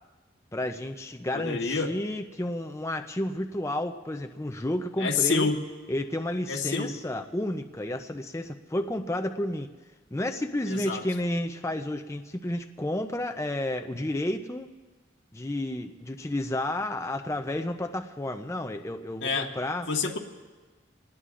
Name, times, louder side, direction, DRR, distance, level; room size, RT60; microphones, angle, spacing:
voice 1, 0.5-5.5 5.9-9.7 10.1-14.7 15.3-19.9, left 1 dB, 15° left, 5 dB, 0.5 m, -31 dB
voice 2, 1.3-1.9 5.0-5.6 6.5-7.0 10.7-11.0 19.2-19.5 19.9-20.2, left 4 dB, 80° left, 2 dB, 1.5 m, -27 dB
27.0 x 19.0 x 2.5 m, 1.3 s
head